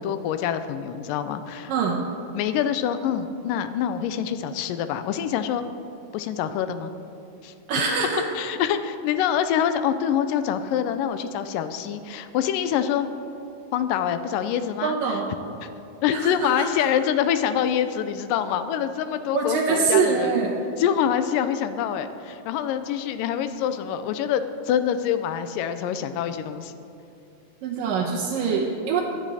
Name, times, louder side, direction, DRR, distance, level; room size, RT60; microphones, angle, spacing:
voice 1, 0.0-1.7 2.3-5.7 6.1-6.9 7.4-7.8 8.4-13.1 13.7-15.2 15.6-15.7 16.0-20.3 20.8-26.8, left 9 dB, 85° left, 10 dB, 2.3 m, -25 dB
voice 2, 7.7-8.2 14.8-15.3 16.1-16.7 19.3-20.6 27.6-29.0, right 5 dB, 85° right, -2 dB, 2.7 m, -24 dB
16.5 x 11.5 x 4.2 m, 2.7 s
omnidirectional pair, 3.8 m